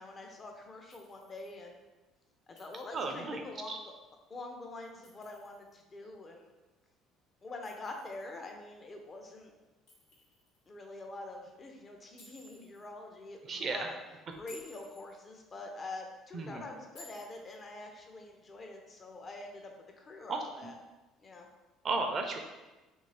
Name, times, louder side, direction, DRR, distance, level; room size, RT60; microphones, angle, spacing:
voice 1, 0.0-1.8 2.5-3.9 4.3-6.5 7.4-9.5 10.7-14.0 14.4-20.8 21.2-21.5, left 2 dB, 35° left, 2 dB, 0.6 m, -45 dB
Chink clink, 0.9-1.5 2.6-3.2 4.8-5.7 7.6-8.5 9.9-10.6 12.2-12.9 14.3-15.1 16.9-17.6, left 2 dB, 85° left, 0.9 m, -57 dB
voice 2, 2.9-3.8 13.5-13.9 16.3-16.7 20.3-20.4 21.8-22.4, right 3 dB, 45° right, 4 dB, 0.5 m, -34 dB
2.9 x 2.7 x 3.2 m, 1.1 s
hypercardioid pair, 70°, 0 cm